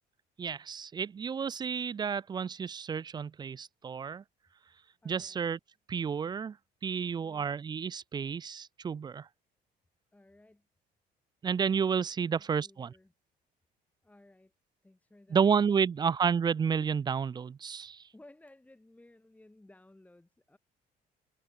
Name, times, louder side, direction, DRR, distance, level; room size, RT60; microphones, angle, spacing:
voice 1, 0.4-4.2 5.1-5.6 5.9-6.6 6.8-9.3 11.4-12.9 15.3-18.0, right 6 dB, 25° right, 0.4 m, -31 dB
voice 2, 5.0-5.5 7.2-7.6 10.1-10.7 12.2-13.1 14.0-14.5 14.8-16.4 18.1-20.6, left 1 dB, 10° left, 2.4 m, -59 dB
cardioid pair, 110°, 17 cm